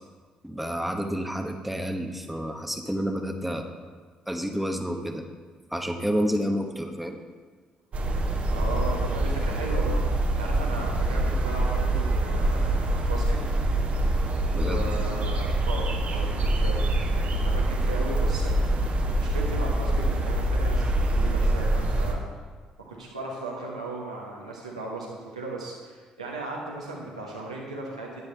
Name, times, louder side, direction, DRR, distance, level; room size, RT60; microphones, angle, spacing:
voice 1, 0.4-3.6 4.3-5.3 5.7-7.2 14.5-15.0, equal, 5° right, 4 dB, 1.1 m, -29 dB
sound 1, 7.9-22.1, right 1 dB, 45° right, 1.3 m, -25 dB
voice 2, 8.5-10.0 10.4-13.6 14.5-18.6 19.1-20.8 21.1-22.2 22.8-28.2, right 2 dB, 85° right, -3 dB, 1.4 m, -36 dB
11.5 x 10.0 x 3.4 m, 1.5 s
figure-of-eight pair, 45°, 3 cm